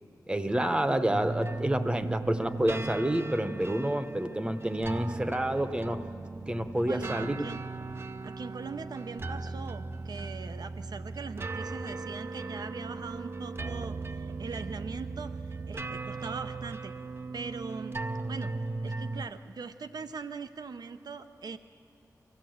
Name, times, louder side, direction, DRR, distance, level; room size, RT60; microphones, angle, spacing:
voice 1, 0.3-6.0 6.5-7.4, right 1 dB, 15° right, 9 dB, 0.8 m, -29 dB
sound 1, 1.1-19.3, right 3 dB, 35° right, 0.5 m, -37 dB
voice 2, 6.8-7.6 8.2-16.9 17.3-18.0 18.3-18.5 18.8-21.6, right 5 dB, 75° right, 9 dB, 0.7 m, -41 dB
23.0 x 15.0 x 7.8 m, 2.4 s
wide cardioid pair, 115°, 7 cm